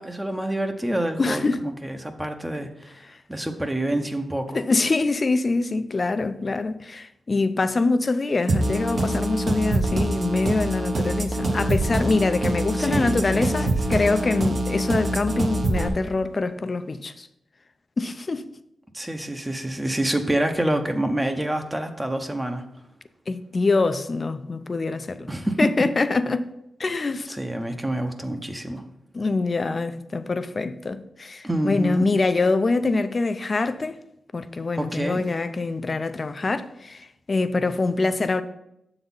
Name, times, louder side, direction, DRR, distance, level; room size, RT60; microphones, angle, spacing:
voice 1, 0.0-3.0 3.3-4.6 12.8-13.6 18.9-22.6 25.3-25.6 27.3-28.8 31.4-32.1 34.8-35.2, right 1 dB, 15° right, 0.7 m, -27 dB
voice 2, 1.2-1.6 4.5-17.3 18.0-18.5 23.3-25.3 25.6-26.5 26.8-27.4 29.1-34.0 34.3-38.4, left 3 dB, 45° left, 0.5 m, -24 dB
sound 1, 8.5-15.9, right 1 dB, 55° right, 1.0 m, -24 dB
6.9 x 4.0 x 5.5 m
cardioid pair, 60°, 0 cm